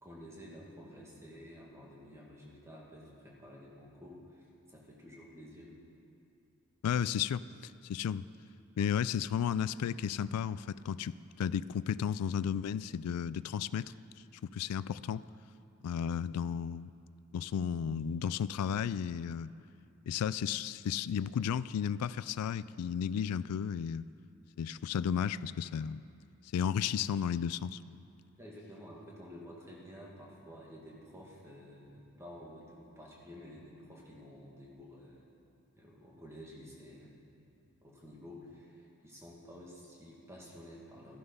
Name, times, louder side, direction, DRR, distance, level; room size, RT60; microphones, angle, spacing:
voice 1, 0.0-4.4 4.7-5.7 28.3-35.3 35.7-41.2, equal, 10° right, -3 dB, 1.9 m, -51 dB
voice 2, 6.8-8.2 8.8-13.8 14.5-15.2 15.8-16.9 17.3-19.5 20.1-24.1 24.6-26.0 26.5-27.8, left 8 dB, 90° left, 17 dB, 0.3 m, -33 dB
13.0 x 11.5 x 5.5 m, 2.6 s
head